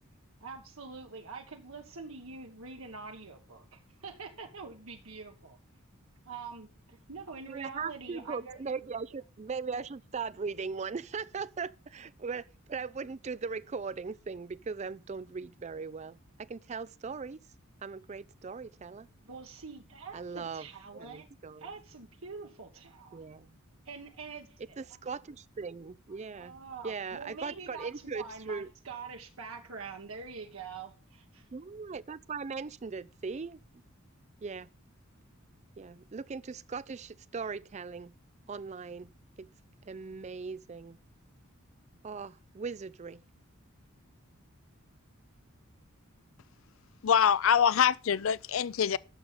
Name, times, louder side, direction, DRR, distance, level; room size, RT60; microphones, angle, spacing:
voice 1, 0.4-5.6 6.2-8.6 19.2-21.3 21.6-23.3 23.8-24.8 26.3-31.5, right 4 dB, 80° right, 1.5 m, -45 dB
voice 2, 7.5-17.4 17.8-19.1 20.1-20.7 20.9-21.7 23.1-23.5 24.8-26.6 26.8-28.7 31.5-33.6 34.4-34.7 35.8-38.1 38.5-39.1 39.4-39.5 39.9-41.0 42.0-43.2, right 5 dB, 30° right, 0.4 m, -39 dB
voice 3, 47.0-49.0, left 8 dB, 65° left, 0.5 m, -24 dB
11.0 x 6.7 x 5.7 m
head